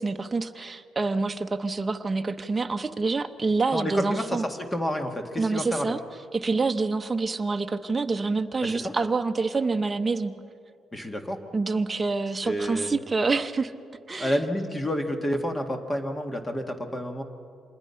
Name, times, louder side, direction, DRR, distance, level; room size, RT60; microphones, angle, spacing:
voice 1, 0.0-4.4 5.4-6.0 6.3-10.3 11.5-13.7 14.1-14.4, right 3 dB, 25° right, 6 dB, 0.9 m, -27 dB
voice 2, 3.7-5.9 8.6-8.9 10.9-11.4 12.4-12.9 14.2-17.2, equal, 20° left, 5 dB, 1.9 m, -29 dB
26.5 x 20.5 x 5.8 m, 2.4 s
cardioid pair, 90°, 0 cm